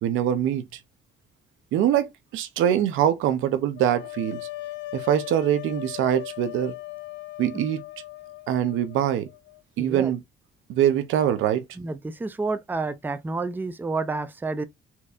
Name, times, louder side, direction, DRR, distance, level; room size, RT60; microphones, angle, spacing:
voice 1, 0.0-0.7 1.7-4.4 4.9-6.7 7.4-7.8 8.5-9.3 9.8-10.2 10.7-11.6, right 10 dB, 85° right, 0.6 m, -23 dB
sound 1, 3.8-9.6, left 18 dB, 70° left, 0.4 m, -38 dB
voice 2, 9.8-10.1 11.8-14.6, right 3 dB, 10° right, 0.4 m, -29 dB
4.3 x 2.7 x 2.4 m
cardioid pair, 90°, 20 cm